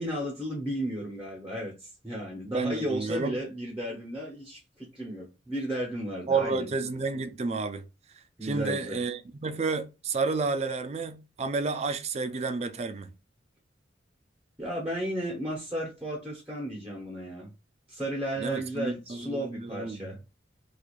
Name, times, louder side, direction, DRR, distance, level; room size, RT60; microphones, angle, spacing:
voice 1, 0.0-6.7 8.4-9.0 14.6-17.5 17.9-20.2, right 1 dB, 10° right, 0.8 m, -34 dB
voice 2, 2.5-3.4 6.3-7.8 8.4-13.1 18.4-20.1, right 4 dB, 35° right, 0.4 m, -31 dB
4.5 x 2.4 x 2.4 m
head